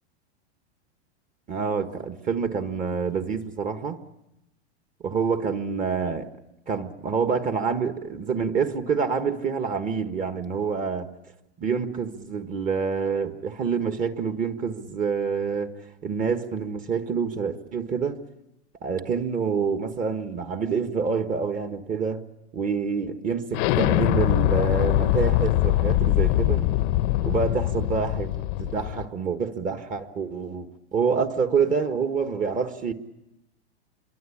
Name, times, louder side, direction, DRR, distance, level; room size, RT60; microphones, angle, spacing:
voice 1, 1.5-4.0 5.0-6.3 6.7-11.1 11.6-15.7 16.0-18.2 18.8-22.2 22.5-26.7 27.2-28.3 28.6-32.9, right 5 dB, 25° right, 1.5 m, -27 dB
Explosion, 23.5-29.1, left 15 dB, 50° left, 0.9 m, -23 dB
27.5 x 23.5 x 8.6 m
supercardioid pair, 140°, 34 cm